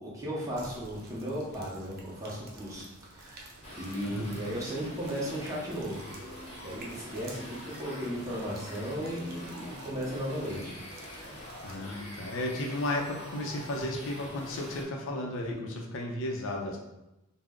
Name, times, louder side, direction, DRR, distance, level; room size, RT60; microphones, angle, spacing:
voice 1, 0.0-6.1 6.6-10.8 11.3-11.6, equal, 15° right, -6 dB, 0.7 m, -36 dB
sound 1, 0.5-11.8, right 2 dB, 45° right, 0.4 m, -52 dB
sound 2, 3.6-14.8, equal, 30° left, 0.7 m, -45 dB
Organ, 4.8-11.4, left 6 dB, 85° right, 0.6 m, -54 dB
voice 2, 11.4-16.8, left 1 dB, 65° left, 0 dB, 0.5 m, -34 dB
2.4 x 2.0 x 3.5 m, 0.95 s
head